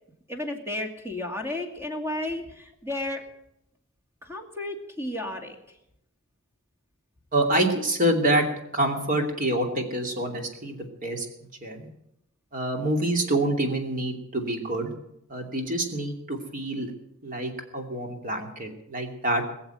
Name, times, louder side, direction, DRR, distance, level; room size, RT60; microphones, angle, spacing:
voice 1, 0.3-3.2 4.2-5.6, left 1 dB, 10° right, 3 dB, 2.3 m, -33 dB
voice 2, 7.3-8.5 8.7-11.3 11.6-11.9 12.5-14.9 15.3-16.9 17.2-19.5, right 1 dB, 40° right, 3 dB, 2.7 m, -26 dB
21.5 x 7.2 x 9.0 m, 0.80 s
head